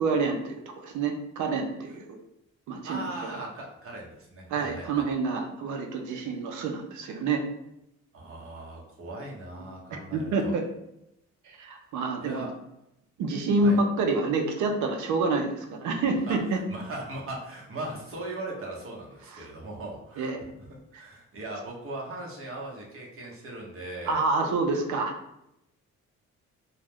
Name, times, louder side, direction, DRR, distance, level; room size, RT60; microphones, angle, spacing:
voice 1, 0.0-2.2 2.7-3.1 4.5-7.4 9.6-9.7 10.1-10.6 11.5-12.5 13.2-16.6 19.3-19.5 20.2-20.4 20.9-21.0 24.1-25.1, right 3 dB, 75° right, 4 dB, 0.5 m, -27 dB
voice 2, 2.9-5.1 8.1-10.5 12.2-12.5 13.6-13.8 16.3-20.7 20.9-24.2, right 2 dB, 45° right, -1 dB, 0.9 m, -39 dB
2.3 x 2.1 x 3.4 m, 0.82 s
cardioid pair, 90°, 30 cm